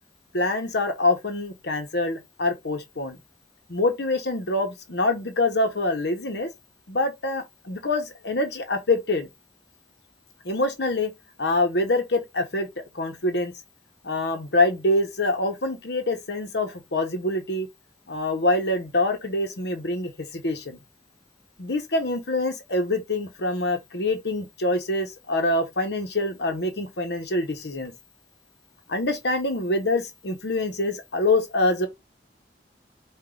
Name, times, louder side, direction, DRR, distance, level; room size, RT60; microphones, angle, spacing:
voice 1, 0.3-3.2 3.7-6.5 6.9-9.3 10.4-11.1 11.4-12.7 12.9-13.5 14.0-17.7 18.1-20.8 21.6-27.9 28.9-31.9, left 2 dB, 65° left, 1.1 m, -25 dB
4.6 x 2.6 x 3.9 m
head